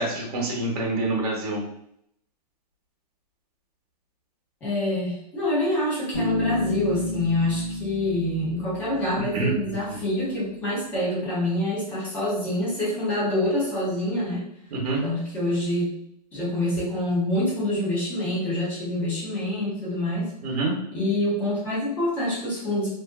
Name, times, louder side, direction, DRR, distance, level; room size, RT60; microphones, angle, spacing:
voice 1, 0.0-1.6 9.3-9.5 14.7-15.0 20.4-20.7, right 2 dB, 60° right, -2 dB, 0.9 m, -26 dB
voice 2, 4.6-14.4 15.0-15.9 16.3-20.3 20.9-22.9, left 1 dB, 10° left, -7 dB, 0.4 m, -26 dB
Bass guitar, 6.1-9.9, left 2 dB, 25° left, 0.9 m, -31 dB
2.6 x 2.5 x 2.3 m, 0.74 s
hypercardioid pair, 180°, 21 cm